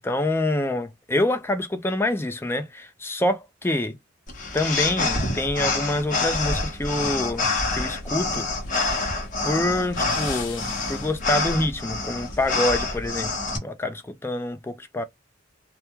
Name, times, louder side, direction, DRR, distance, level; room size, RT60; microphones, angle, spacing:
voice 1, 0.0-4.0 4.5-8.5 9.4-13.3 13.6-15.0, left 1 dB, 10° left, 0.4 m, -26 dB
sound 1, 4.3-13.6, left 3 dB, 40° left, 0.9 m, -27 dB
sound 2, 7.4-11.3, left 4 dB, 75° left, 0.7 m, -41 dB
2.2 x 2.2 x 2.9 m
head